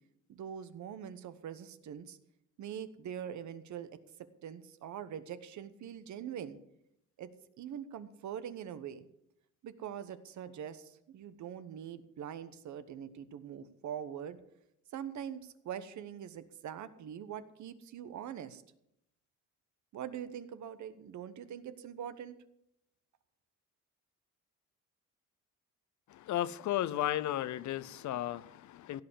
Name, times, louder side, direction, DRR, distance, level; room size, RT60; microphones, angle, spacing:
voice 1, 0.3-2.2 2.6-3.9 4.4-6.6 7.2-7.3 7.6-9.0 9.6-14.4 14.9-18.6 19.9-22.4, right 9 dB, 70° right, 1.1 m, -43 dB
voice 2, 26.3-29.0, left 13 dB, 70° left, 0.7 m, -34 dB
16.0 x 5.6 x 8.4 m
cardioid pair, 90°, 30 cm